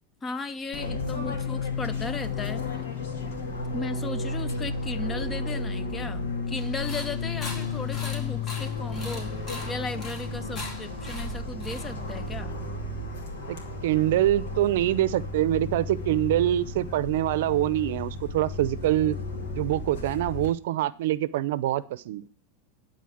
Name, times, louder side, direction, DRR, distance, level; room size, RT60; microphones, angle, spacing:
voice 1, 0.2-2.8 3.7-9.3 9.7-12.5, left 3 dB, 20° left, 0.7 m, -36 dB
Fixed-wing aircraft airplane, 0.7-20.5, left 3 dB, 80° left, 2.5 m, -33 dB
sound 1, 6.6-12.3, left 2 dB, 40° left, 3.4 m, -41 dB
voice 2, 13.8-19.2 19.5-22.2, right 14 dB, 70° right, 0.6 m, -25 dB
11.5 x 4.3 x 7.7 m
hypercardioid pair, 110°, 0 cm